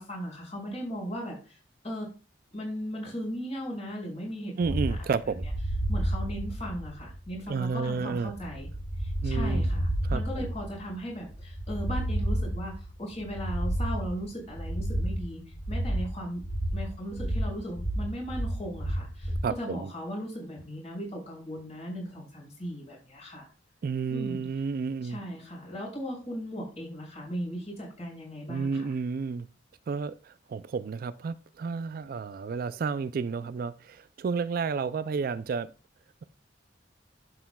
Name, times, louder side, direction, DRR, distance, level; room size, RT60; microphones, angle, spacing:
voice 1, 0.0-1.6 1.8-2.1 2.5-5.0 5.9-8.7 9.0-15.4 15.7-16.4 16.7-23.5 24.1-24.5 25.0-28.9, equal, 35° left, 5.5 m, -37 dB
sound 1, 4.6-19.5, right 1 dB, 50° left, 4.3 m, -31 dB
voice 2, 4.6-5.4 7.5-8.3 9.2-9.7 10.0-10.5 19.4-19.9 23.8-25.2 28.5-29.5 29.9-35.7, right 5 dB, 50° right, 0.3 m, -31 dB
11.5 x 8.0 x 2.3 m
head